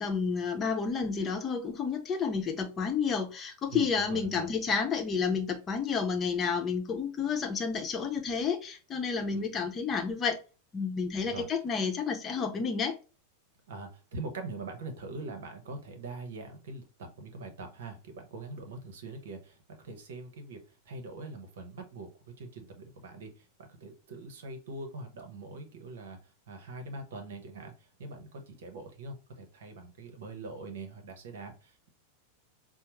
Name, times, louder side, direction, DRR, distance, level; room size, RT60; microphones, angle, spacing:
voice 1, 0.0-10.4 10.7-13.0, left 5 dB, 25° left, 3 dB, 0.9 m, -30 dB
voice 2, 3.7-4.5 9.3-9.4 11.2-11.5 13.7-22.1 22.4-31.9, right 3 dB, 60° right, 5 dB, 1.0 m, -43 dB
5.6 x 2.1 x 3.0 m, 0.33 s
figure-of-eight pair, 90°, 0 cm